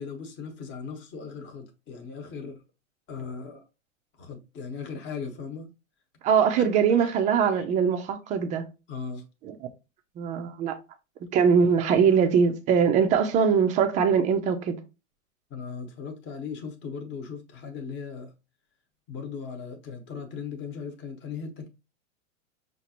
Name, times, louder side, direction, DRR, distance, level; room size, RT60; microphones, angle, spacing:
voice 1, 0.0-2.6 3.1-3.6 4.2-5.7 6.5-6.7 7.0-7.2 7.5-7.6 8.9-9.2 15.5-18.3 19.1-21.7, left 5 dB, 25° left, 1.0 m, -38 dB
voice 2, 6.2-8.6 9.4-9.6 10.2-10.8 11.3-14.8, right 6 dB, 20° right, 0.4 m, -22 dB
5.6 x 2.5 x 2.8 m
hypercardioid pair, 120°, 41 cm